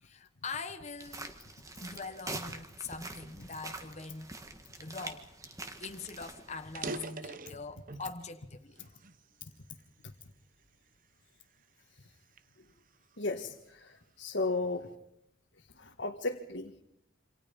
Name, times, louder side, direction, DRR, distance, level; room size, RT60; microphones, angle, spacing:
voice 1, 0.0-1.3 1.8-4.4 4.8-5.3 5.8-9.0, left 4 dB, 35° left, 1.4 m, -43 dB
sound 1, 1.0-7.1, right 2 dB, 15° right, 1.8 m, -45 dB
sound 2, 5.6-5.7 6.0-6.1 6.6-8.2 8.7-10.0 10.6-10.9 11.5-13.5, right 3 dB, 40° right, 0.9 m, -44 dB
voice 2, 13.2-14.9 15.8-16.8, left 3 dB, 60° left, 1.7 m, -35 dB
28.5 x 26.5 x 5.4 m
head